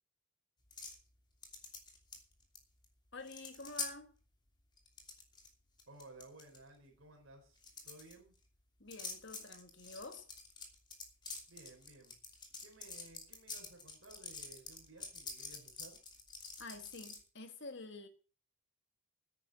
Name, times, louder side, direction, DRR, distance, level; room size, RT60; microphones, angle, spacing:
sound 1, 0.7-1.0 1.4-2.6 2.8-2.9 3.2-3.9 4.8-5.5 5.8-6.6 7.6-8.1 8.9-17.2, left 4 dB, 20° left, 2.8 m, -46 dB
voice 1, 3.1-4.1 8.8-10.3 16.6-18.1, left 3 dB, 55° left, 1.8 m, -49 dB
voice 2, 5.9-8.4 11.5-12.2 12.6-16.0, right 2 dB, 70° right, 4.3 m, -57 dB
10.0 x 9.6 x 7.4 m
head